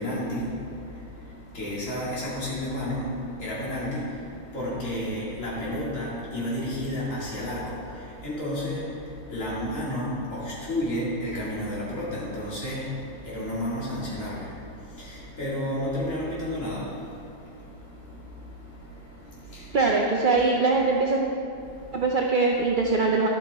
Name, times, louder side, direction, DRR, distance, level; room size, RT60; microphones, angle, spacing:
voice 1, 0.0-19.8 21.6-22.0, left 1 dB, 55° left, -7 dB, 2.7 m, -32 dB
voice 2, 19.7-21.2 21.9-23.3, right 3 dB, 60° right, 0 dB, 0.5 m, -22 dB
12.5 x 5.8 x 4.1 m, 2.6 s
omnidirectional pair, 1.6 m